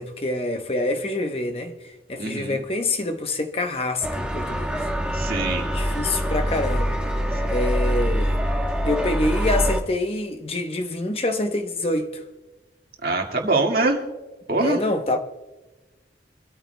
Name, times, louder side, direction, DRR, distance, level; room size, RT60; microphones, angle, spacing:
voice 1, 0.0-1.8 2.1-4.7 5.7-7.0 7.5-8.3 8.8-12.2 14.6-15.2, left 2 dB, 35° left, 0.9 m, -26 dB
voice 2, 2.2-2.6 5.1-5.7 13.0-14.0 14.5-14.8, right 2 dB, 55° right, 2.0 m, -23 dB
sound 1, 4.0-9.8, equal, 5° right, 1.1 m, -24 dB
25.0 x 13.5 x 2.3 m
head